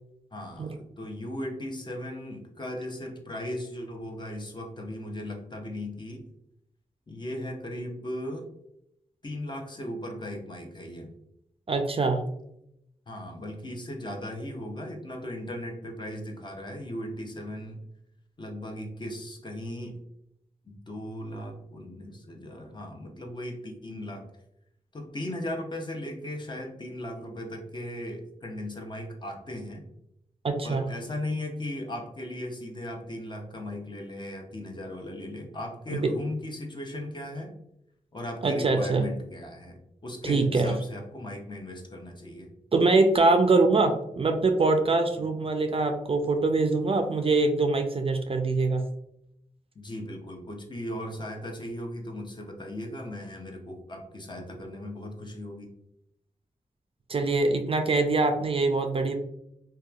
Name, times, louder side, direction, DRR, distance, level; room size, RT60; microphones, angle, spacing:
voice 1, 0.3-6.2 7.1-8.5 9.2-11.1 13.1-17.8 18.4-20.0 20.7-24.2 24.9-29.8 30.6-37.5 38.1-42.5 45.2-45.3 49.8-55.7, left 1 dB, 30° left, 2 dB, 0.6 m, -37 dB
voice 2, 11.7-12.2 30.4-30.9 35.9-36.1 38.4-39.0 40.2-40.7 42.7-48.8 57.1-59.2, right 3 dB, 40° right, 5 dB, 0.3 m, -23 dB
2.9 x 2.2 x 2.3 m, 0.79 s
cardioid pair, 50°, 15 cm